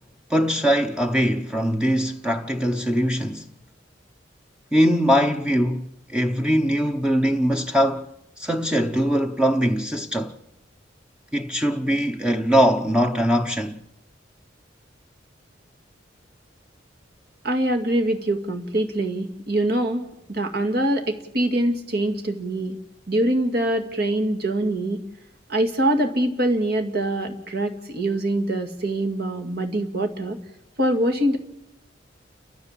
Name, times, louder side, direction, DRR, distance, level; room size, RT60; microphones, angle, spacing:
voice 1, 0.3-3.5 4.7-8.1 8.4-10.4 11.3-13.8, equal, 5° right, 0.8 m, -21 dB
voice 2, 17.4-22.8 23.1-25.0 25.5-30.4 30.8-31.4, right 1 dB, 55° right, 2.2 m, -24 dB
30.0 x 13.5 x 7.5 m
head